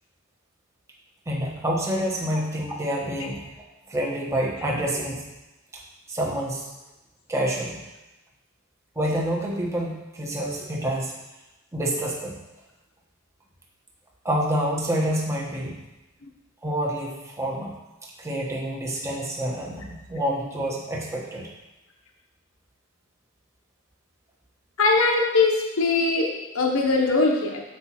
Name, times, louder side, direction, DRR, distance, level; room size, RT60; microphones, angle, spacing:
voice 1, 1.3-3.5 3.9-5.3 5.7-5.8 6.1-6.7 7.3-7.8 8.9-11.2 11.7-12.4 14.2-15.8 16.6-17.7 18.0-21.5, right 1 dB, 15° right, -3 dB, 1.1 m, -28 dB
voice 2, 24.8-26.3 26.5-27.6, left 3 dB, 75° left, 1 dB, 0.9 m, -21 dB
7.8 x 5.0 x 4.2 m, 1.0 s
head